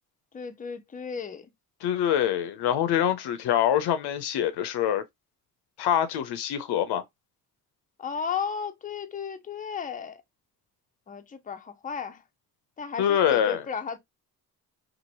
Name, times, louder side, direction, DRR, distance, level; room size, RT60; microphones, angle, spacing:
voice 1, 0.3-1.5 8.0-10.2 11.1-12.2 12.8-14.0, left 6 dB, 20° left, 0.5 m, -34 dB
voice 2, 1.8-5.0 5.8-7.0 13.0-13.6, left 10 dB, 85° left, 0.6 m, -25 dB
3.0 x 2.5 x 2.6 m
cardioid pair, 65°, 38 cm